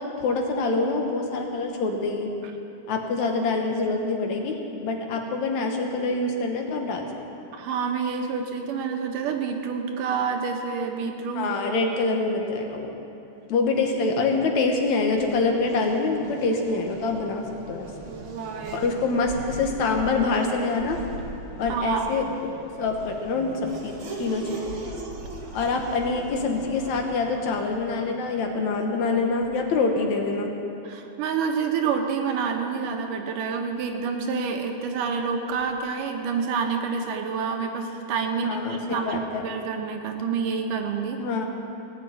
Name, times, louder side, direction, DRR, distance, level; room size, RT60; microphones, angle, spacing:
voice 1, 0.0-2.3 2.9-7.0 11.4-13.0 13.5-17.9 18.7-21.0 21.6-22.5 22.8-24.6 25.5-30.5 38.4-39.4 41.2-41.5, left 3 dB, 65° left, 3 dB, 2.4 m, -25 dB
voice 2, 7.5-11.5 18.1-18.9 21.7-22.1 30.8-41.2, right 5 dB, 80° right, 3 dB, 2.7 m, -28 dB
Race car auto racing / Accelerating revving vroom, 14.2-29.8, right 3 dB, 45° right, 2.3 m, -40 dB
18.0 x 7.5 x 9.0 m, 2.8 s
omnidirectional pair, 3.7 m